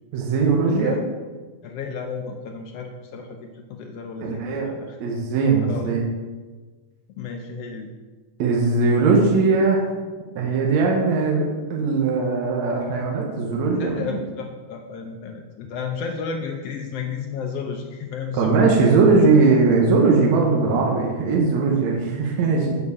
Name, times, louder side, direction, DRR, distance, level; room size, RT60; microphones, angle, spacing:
voice 1, 0.1-0.9 4.2-4.7 5.0-6.0 8.4-9.9 10.4-14.0 18.3-22.8, right 4 dB, 70° right, -1 dB, 2.2 m, -19 dB
voice 2, 0.7-1.0 1.6-5.0 5.6-5.9 7.1-7.9 13.8-18.6, left 5 dB, 80° left, 3 dB, 1.3 m, -32 dB
7.1 x 4.7 x 6.7 m, 1.4 s
omnidirectional pair, 3.4 m